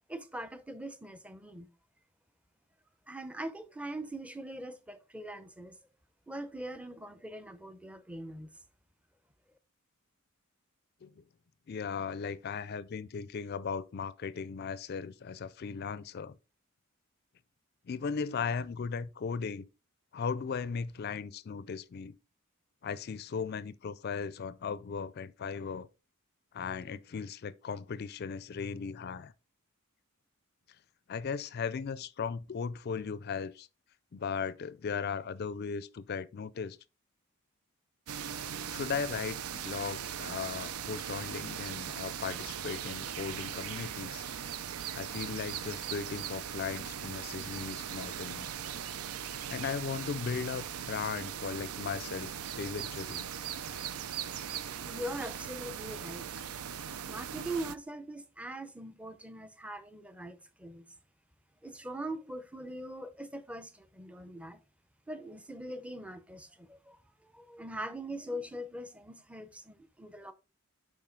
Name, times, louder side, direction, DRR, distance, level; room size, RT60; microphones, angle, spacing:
voice 1, 0.1-1.7 3.1-5.8 6.3-8.6 54.5-56.4 57.1-60.9 61.6-64.6 65.1-67.0 67.2-70.3, right 1 dB, 5° right, 0.6 m, -42 dB
voice 2, 11.7-16.4 17.9-19.7 20.1-22.2 22.8-25.9 26.5-29.3 31.1-33.7 34.1-36.8 38.7-44.2 44.9-48.5 49.5-52.3 52.6-53.3, left 6 dB, 45° left, 0.4 m, -37 dB
sound 1, 38.1-57.8, right 9 dB, 90° right, 0.5 m, -39 dB
7.4 x 4.9 x 3.7 m
head